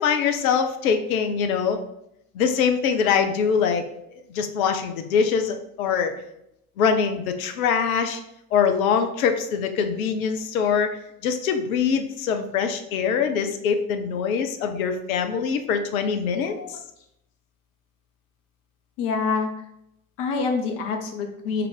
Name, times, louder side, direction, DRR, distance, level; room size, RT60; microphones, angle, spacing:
voice 1, 0.0-1.8 2.3-3.8 4.3-6.1 6.8-8.2 8.5-11.0 11.2-16.8, left 6 dB, 65° left, 7 dB, 0.6 m, -23 dB
voice 2, 19.0-19.5 20.2-21.7, left 4 dB, 50° left, 3 dB, 1.0 m, -26 dB
4.6 x 2.5 x 4.6 m, 0.80 s
figure-of-eight pair, 65°, 45 cm